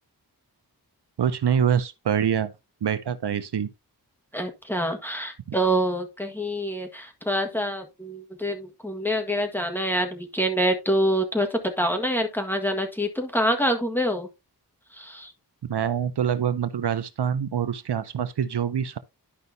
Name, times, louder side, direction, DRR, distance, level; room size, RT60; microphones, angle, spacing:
voice 1, 1.2-2.5 2.8-3.7 15.7-19.0, right 8 dB, 80° right, 0.7 m, -25 dB
voice 2, 4.3-14.3 14.9-15.3, equal, 5° left, 1.5 m, -26 dB
11.5 x 5.3 x 2.7 m
wide cardioid pair, 80°, 40 cm